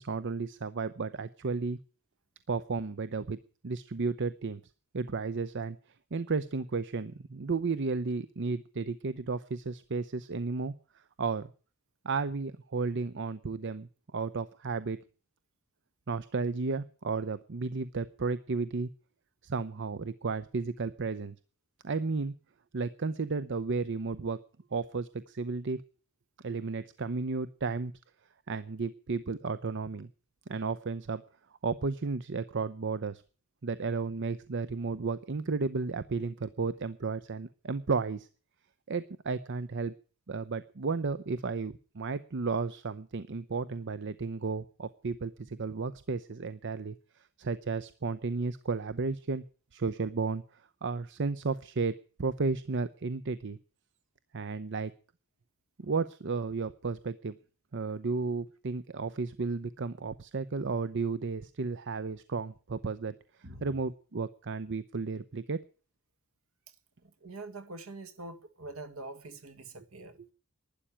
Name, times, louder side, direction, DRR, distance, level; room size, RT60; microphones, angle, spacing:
voice 1, 0.0-1.8 2.5-3.4 3.6-4.6 4.9-5.8 6.1-11.5 12.0-15.0 16.1-18.9 19.4-21.4 21.8-22.3 22.7-24.4 24.7-25.8 26.4-27.9 28.5-30.1 30.5-31.2 31.6-33.2 33.6-38.3 38.9-39.9 40.3-47.0 47.4-49.4 49.7-53.6 54.3-54.9 55.8-57.4 57.7-63.1 63.6-65.6, right 4 dB, 55° right, 0.7 m, -33 dB
voice 2, 67.0-70.2, right 2 dB, 70° right, 1.8 m, -44 dB
12.0 x 10.0 x 10.0 m
head